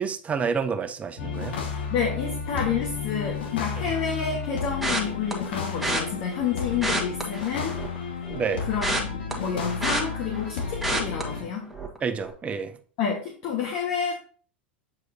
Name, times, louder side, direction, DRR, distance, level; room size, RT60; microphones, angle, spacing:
voice 1, 0.0-1.5 8.3-8.7 12.0-12.7, right 6 dB, 25° right, 0.8 m, -28 dB
sound 1, 1.2-11.4, left 5 dB, 70° left, 1.4 m, -32 dB
voice 2, 1.9-7.8 8.7-11.7 13.0-14.1, left 7 dB, 55° left, 1.4 m, -29 dB
sound 2, 4.8-5.3 5.8-6.0 6.7-8.0 8.3-10.5 10.8-11.2 11.7-12.0 12.2-12.3, right 1 dB, ahead, 1.5 m, -28 dB
8.0 x 4.7 x 2.7 m
hypercardioid pair, 95°, 6 cm